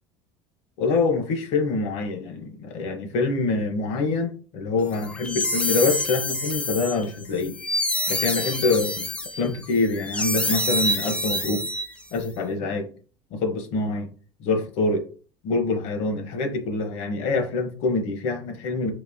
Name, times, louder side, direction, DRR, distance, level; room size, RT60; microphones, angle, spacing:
voice 1, 0.8-7.6 8.1-9.1 9.4-11.7 12.1-12.9 13.3-14.1 14.4-15.1 15.4-18.9, left 3 dB, 65° left, 0.8 m, -25 dB
sound 1, 4.9-12.2, left 1 dB, 10° left, 0.4 m, -27 dB
3.9 x 2.6 x 2.6 m
cardioid pair, 130°, 12 cm